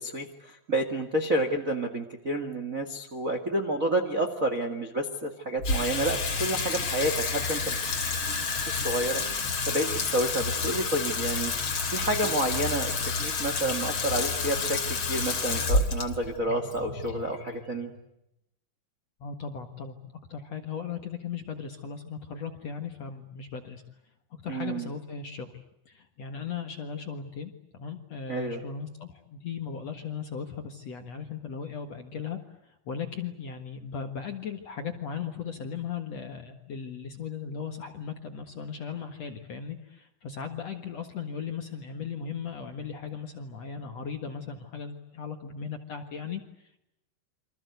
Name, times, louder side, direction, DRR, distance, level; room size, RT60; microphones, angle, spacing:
voice 1, 0.0-7.7 8.7-9.2 9.7-11.5 11.9-17.9 24.5-24.9 28.3-28.6, right 1 dB, 70° right, 5 dB, 0.7 m, -29 dB
Water tap faucet / Sink (filling or washing), 5.6-18.0, left 4 dB, 35° left, 2.9 m, -30 dB
voice 2, 19.2-23.8 24.4-46.4, left 6 dB, 55° left, 5 dB, 1.8 m, -37 dB
28.5 x 25.5 x 8.1 m, 0.84 s
omnidirectional pair, 5.3 m